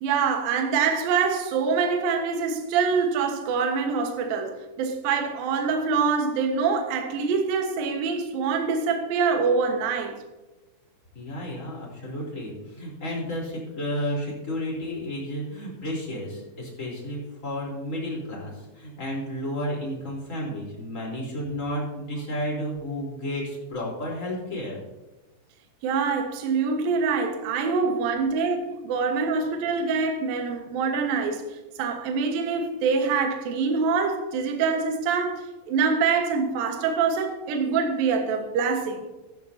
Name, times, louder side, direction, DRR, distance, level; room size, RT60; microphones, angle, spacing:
voice 1, 0.0-10.2 25.8-39.0, right 5 dB, 65° right, 2.5 m, -25 dB
voice 2, 11.1-24.8, equal, 20° left, 3.4 m, -32 dB
14.0 x 12.0 x 2.8 m
omnidirectional pair, 5.6 m